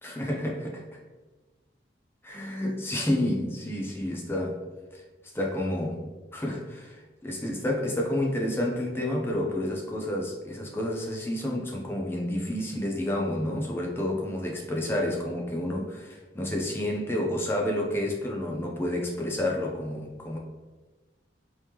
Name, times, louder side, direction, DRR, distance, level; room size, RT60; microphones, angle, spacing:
voice 1, 0.0-0.8 2.2-4.6 4.9-5.0 5.3-20.4, left 1 dB, 10° left, -1 dB, 0.4 m, -30 dB
3.1 x 2.9 x 3.4 m, 1.2 s
head